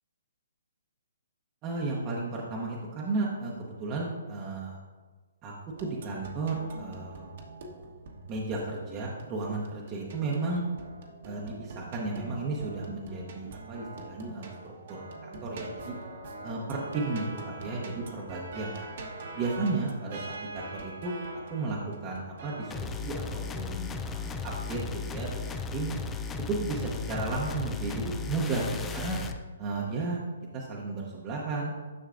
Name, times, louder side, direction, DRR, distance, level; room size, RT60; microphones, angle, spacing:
voice 1, 1.6-4.8 5.4-5.5 5.8-7.3 8.3-10.6 11.2-15.9 16.4-18.9 19.3-21.2 21.5-25.9 26.5-29.2 29.6-30.2 30.5-31.7, right 3 dB, 25° right, -4 dB, 0.9 m, -34 dB
sound 1, 5.8-22.7, right 2 dB, 50° right, 1.2 m, -44 dB
sound 2, 22.7-29.4, left 5 dB, 10° left, 0.4 m, -35 dB
10.0 x 6.3 x 2.5 m, 1.4 s
hypercardioid pair, 155°, 0 cm